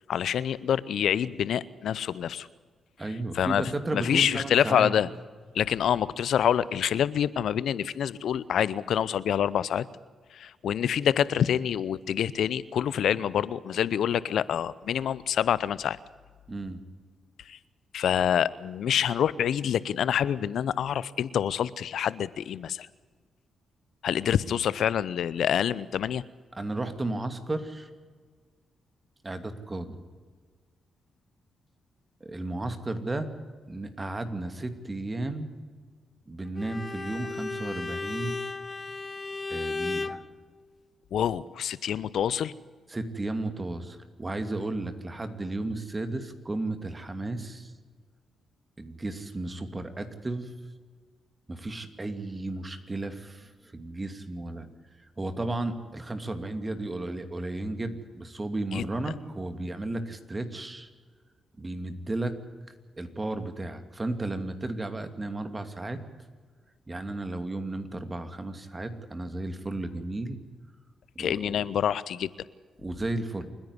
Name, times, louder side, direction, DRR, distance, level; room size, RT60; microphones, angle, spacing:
voice 1, 0.1-2.5 3.3-3.6 3.9-5.1 5.5-9.9 10.3-16.0 17.4-17.6 17.9-22.9 24.0-26.2 41.1-42.5 58.7-58.9 71.2-72.3, left 9 dB, 75° left, 20 dB, 0.7 m, -26 dB
voice 2, 3.0-4.9 16.5-16.8 26.6-27.9 29.2-30.0 32.2-33.3 33.7-35.5 36.3-38.4 39.5-40.2 42.9-47.7 48.8-50.5 51.5-54.7 55.2-60.9 61.6-62.4 63.0-66.0 66.9-70.4 71.1-71.6 72.8-73.5, right 2 dB, 25° right, 8 dB, 2.6 m, -34 dB
Bowed string instrument, 36.6-40.3, left 3 dB, 30° left, 0.9 m, -34 dB
28.0 x 10.5 x 9.8 m, 1.5 s
supercardioid pair, 55°, 0 cm